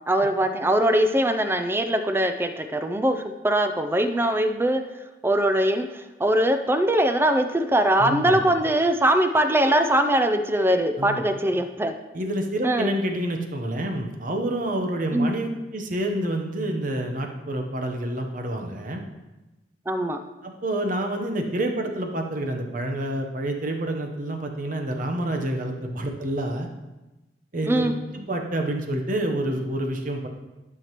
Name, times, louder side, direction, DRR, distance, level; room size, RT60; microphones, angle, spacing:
voice 1, 0.1-4.8 5.2-11.9 12.6-12.9 15.1-15.4 19.9-20.2 27.6-27.9, right 1 dB, 15° right, 7 dB, 0.4 m, -22 dB
voice 2, 8.0-8.4 11.0-11.2 12.1-19.0 20.4-26.7 27.5-27.8 28.1-30.3, right 1 dB, 50° right, 4 dB, 0.9 m, -28 dB
12.0 x 5.8 x 3.0 m, 1.1 s
head